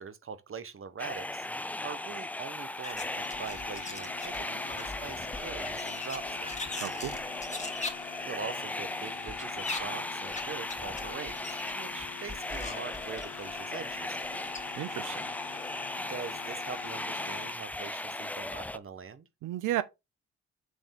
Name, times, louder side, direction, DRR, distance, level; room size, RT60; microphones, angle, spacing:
voice 1, 0.0-1.5 1.8-6.6 8.2-14.5 16.1-19.3, right 6 dB, 40° right, 1.0 m, -43 dB
sound 1, 1.0-18.8, left 1 dB, 5° left, 0.3 m, -37 dB
sound 2, 2.8-4.4 4.7-7.9 9.3-9.8 10.3-10.4 10.7-11.7 12.3-13.5 14.2-14.3 14.5-14.6, left 3 dB, 20° left, 1.8 m, -40 dB
sound 3, 3.0-17.6, left 12 dB, 65° left, 0.7 m, -47 dB
voice 2, 6.8-7.2 14.8-15.3 19.4-19.8, right 14 dB, 75° right, 0.5 m, -33 dB
8.0 x 3.5 x 3.4 m
hypercardioid pair, 40°, 32 cm